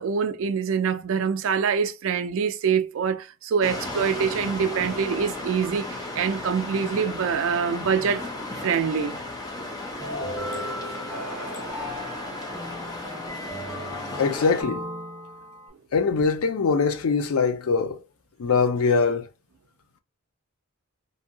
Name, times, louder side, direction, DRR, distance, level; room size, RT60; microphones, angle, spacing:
voice 1, 0.0-8.3 8.6-9.2, right 6 dB, 65° right, 0.3 m, -25 dB
sound 1, 3.6-14.6, left 2 dB, 15° left, 0.6 m, -35 dB
sound 2, 10.0-15.7, left 1 dB, 5° right, 1.0 m, -36 dB
voice 2, 14.2-14.8 15.9-18.0 18.4-19.2, left 5 dB, 80° left, 0.5 m, -22 dB
2.7 x 2.7 x 2.6 m
head